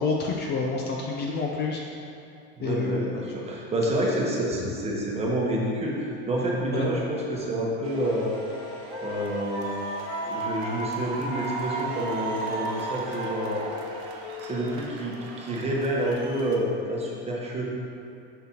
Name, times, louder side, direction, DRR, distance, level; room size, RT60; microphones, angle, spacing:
voice 1, 0.0-1.8 2.6-3.2 6.7-6.8, left 4 dB, 30° left, -1 dB, 0.6 m, -28 dB
voice 2, 2.6-8.4 9.0-9.6 10.3-13.7 14.4-17.7, right 1 dB, 20° right, -3 dB, 1.1 m, -28 dB
Wind instrument woodwind instrument, 6.6-11.0 11.3-15.8, left 7 dB, 75° left, 0.5 m, -40 dB
sound 1, 7.8-16.6, right 4 dB, 80° right, 1.0 m, -35 dB
6.8 x 5.8 x 2.9 m, 2.6 s
supercardioid pair, 125°, 32 cm